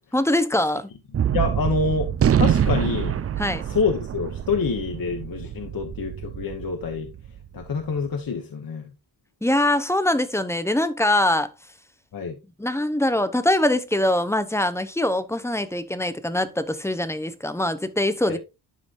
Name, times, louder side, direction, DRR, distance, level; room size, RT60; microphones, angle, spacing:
voice 1, 0.1-0.9 3.4-3.6 9.4-11.5 12.6-18.4, left 1 dB, 5° left, 0.7 m, -23 dB
Gunshot gunfire, 1.1-7.7, right 9 dB, 35° right, 0.4 m, -25 dB
voice 2, 1.3-2.1 2.4-3.1 3.7-7.1 7.5-8.9 12.1-12.3 18.3-18.4, left 4 dB, 55° left, 1.2 m, -26 dB
12.0 x 5.0 x 2.6 m
cardioid pair, 105°, 42 cm